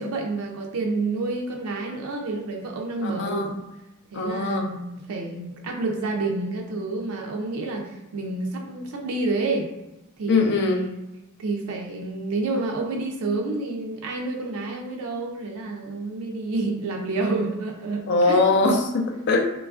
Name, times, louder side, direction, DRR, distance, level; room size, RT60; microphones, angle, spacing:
voice 1, 0.0-3.5 4.1-9.7 10.2-11.0 11.4-18.5, right 3 dB, 80° right, 1 dB, 0.4 m, -29 dB
voice 2, 3.0-3.6 4.1-4.7 10.3-10.9 18.1-19.5, left 3 dB, 55° left, 2 dB, 0.4 m, -22 dB
3.1 x 2.3 x 2.3 m, 0.95 s
head